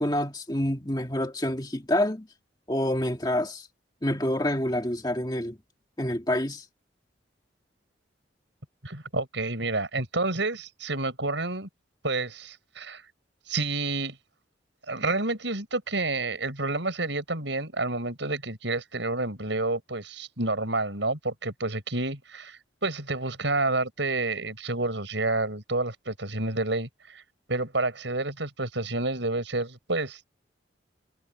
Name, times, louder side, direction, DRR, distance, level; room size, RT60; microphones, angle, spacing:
voice 1, 0.0-2.3 2.7-3.7 4.0-5.6 6.0-6.6, left 1 dB, 20° left, 1.8 m, -27 dB
voice 2, 8.8-11.7 12.0-13.0 13.5-14.2 14.9-27.2 27.5-30.2, right 2 dB, 75° right, 5.8 m, -29 dB
head